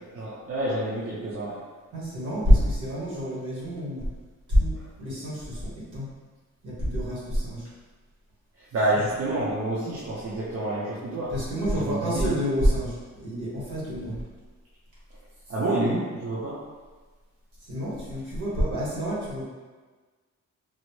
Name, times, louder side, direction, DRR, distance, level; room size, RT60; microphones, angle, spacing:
voice 1, 0.1-1.5 4.7-4.8 8.6-11.3 11.7-12.3 15.5-16.6, right 1 dB, 50° right, -8 dB, 0.7 m, -28 dB
voice 2, 1.9-4.1 4.5-6.1 6.6-7.7 8.9-9.1 11.3-14.2 17.6-19.4, equal, 70° right, -7 dB, 1.4 m, -27 dB
4.0 x 2.0 x 3.1 m, 1.4 s
wide cardioid pair, 160°, 32 cm